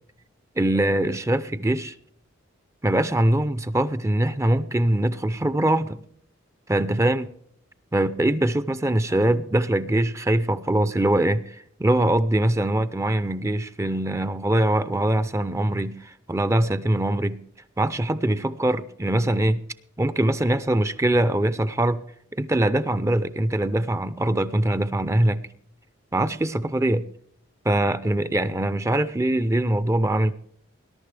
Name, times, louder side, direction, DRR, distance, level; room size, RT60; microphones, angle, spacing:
voice 1, 0.6-1.9 2.8-6.0 6.7-7.3 7.9-17.4 17.8-19.6 20.0-22.0 22.4-25.4 26.1-27.0 27.6-30.3, right 1 dB, 15° right, 0.5 m, -22 dB
20.5 x 11.5 x 3.4 m
head